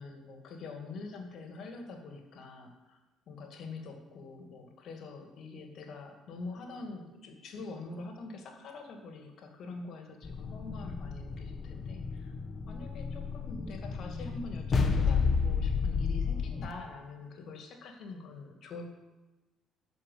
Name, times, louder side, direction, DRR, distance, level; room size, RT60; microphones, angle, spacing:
voice 1, 0.0-3.0 3.3-12.3 12.7-18.9, left 3 dB, 55° left, 4 dB, 2.2 m, -45 dB
sound 1, 10.2-16.7, left 5 dB, 35° left, 1.4 m, -31 dB
13.5 x 5.3 x 8.4 m, 1.1 s
figure-of-eight pair, 50°, 0 cm